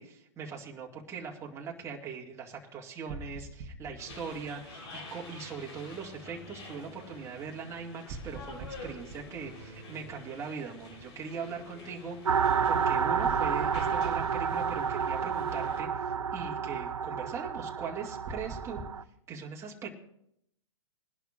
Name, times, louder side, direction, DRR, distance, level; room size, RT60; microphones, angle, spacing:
voice 1, 0.0-18.8 19.3-19.9, right 5 dB, 15° right, -2 dB, 2.1 m, -41 dB
sound 1, 3.1-5.1 8.1-10.4 13.2-15.3 18.2-18.9, right 2 dB, 40° right, 1.3 m, -45 dB
sound 2, 4.0-15.8, left 2 dB, 60° left, 4.0 m, -48 dB
sound 3, 12.3-19.0, right 6 dB, 85° right, 0.6 m, -30 dB
22.0 x 11.0 x 2.5 m, 0.75 s
hypercardioid pair, 115°, 16 cm